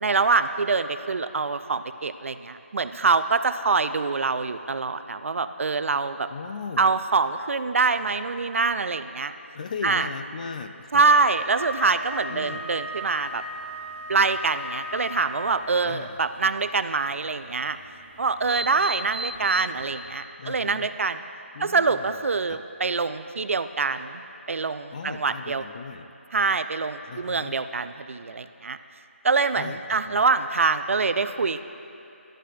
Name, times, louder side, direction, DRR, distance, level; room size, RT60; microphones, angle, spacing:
voice 1, 0.0-6.3 6.8-9.3 9.8-10.1 10.9-13.4 14.1-17.8 18.2-21.2 21.6-24.2 24.5-25.6 26.3-28.8 29.2-31.6, right 4 dB, 70° right, 11 dB, 0.4 m, -25 dB
voice 2, 6.3-6.9 9.5-11.0 12.3-12.6 15.8-16.2 20.4-20.9 21.5-22.6 24.9-26.1 27.0-27.5 29.6-29.8 30.0-30.2, left 5 dB, 35° left, 8 dB, 0.4 m, -37 dB
Wind instrument woodwind instrument, 11.3-15.9, left 1 dB, 65° left, 2.1 m, -37 dB
sound 1, 11.3-20.1, right 1 dB, 40° right, 0.9 m, -42 dB
13.0 x 11.0 x 2.5 m, 2.8 s
figure-of-eight pair, 165°, 7 cm